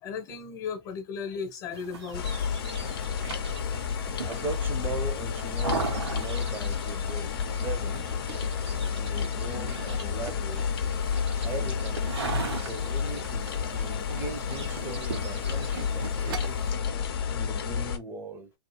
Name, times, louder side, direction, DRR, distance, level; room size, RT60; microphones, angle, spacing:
voice 1, 0.0-2.6 4.1-4.4, left 6 dB, 35° left, 1.0 m, -36 dB
sound 1, 1.7-16.7, right 4 dB, 80° right, 1.0 m, -40 dB
sound 2, 2.1-18.0, left 7 dB, 60° left, 0.7 m, -31 dB
voice 2, 2.7-3.0 4.0-8.2 8.9-10.7 11.4-12.1 12.5-16.9 17.3-18.5, right 3 dB, 15° right, 0.7 m, -39 dB
Tools, 7.8-12.8 13.2-16.7 17.1-17.3 17.6-17.7, right 5 dB, 55° right, 0.8 m, -43 dB
2.4 x 2.4 x 2.9 m
hypercardioid pair, 120°, 14 cm